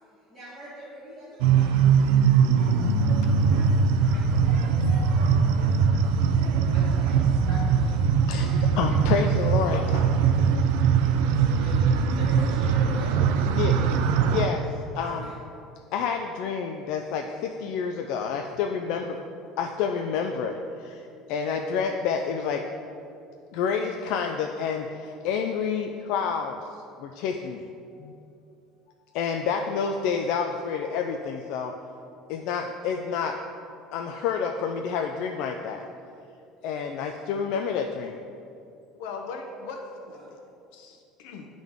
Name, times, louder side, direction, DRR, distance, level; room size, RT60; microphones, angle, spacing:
voice 1, 0.3-1.9 2.5-8.0 11.2-14.0 14.9-15.3 18.8-19.0 40.0-40.3, right 1 dB, 10° right, -11 dB, 1.3 m, -43 dB
sound 1, 1.4-14.5, right 6 dB, 85° right, 0.4 m, -21 dB
voice 2, 4.8-5.1 7.5-7.7 8.3-9.8 13.5-14.0 14.2-15.3 15.9-19.2 19.6-22.7 23.5-26.6 27.0-27.7 28.0-28.1 29.1-31.7 32.3-33.4 33.9-35.8 36.6-38.2, left 6 dB, 60° left, 3 dB, 0.3 m, -29 dB
voice 3, 9.7-10.1 39.0-40.4 40.7-41.5, left 4 dB, 85° left, 3 dB, 0.7 m, -39 dB
10.5 x 3.7 x 3.5 m, 2.5 s
cardioid pair, 175°, 0 cm